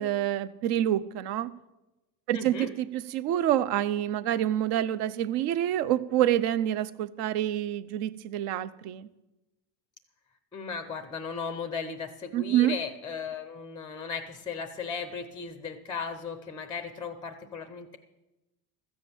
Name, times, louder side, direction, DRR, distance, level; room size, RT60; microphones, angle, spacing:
voice 1, 0.0-1.5 2.3-9.1 12.3-12.7, right 12 dB, 60° right, 16 dB, 0.7 m, -27 dB
voice 2, 2.3-2.7 10.5-18.0, left 5 dB, 10° left, 9 dB, 0.4 m, -36 dB
13.5 x 7.9 x 7.0 m, 1.0 s
cardioid pair, 150°, 45 cm